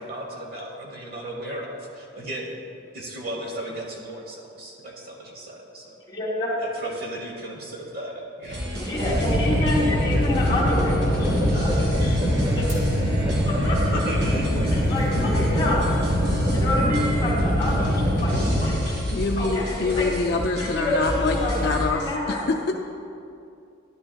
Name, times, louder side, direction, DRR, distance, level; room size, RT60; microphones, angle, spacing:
voice 1, 0.0-2.5 2.9-5.9 6.6-8.7 13.9-14.5, right 1 dB, 50° right, 0 dB, 1.2 m, -35 dB
voice 2, 6.1-6.5 8.7-12.2 12.5-14.3 14.7-15.9 16.5-18.9 19.4-19.6 19.9-20.1 20.6-22.4, left 1 dB, 25° left, -4 dB, 2.1 m, -28 dB
sound 1, 8.4-21.8, equal, 70° right, 2.2 m, -31 dB
sound 2, 9.0-18.7, equal, 25° right, 1.4 m, -23 dB
voice 3, 19.1-22.7, left 3 dB, 55° left, 2 dB, 0.5 m, -25 dB
11.5 x 10.5 x 2.3 m, 2.5 s
head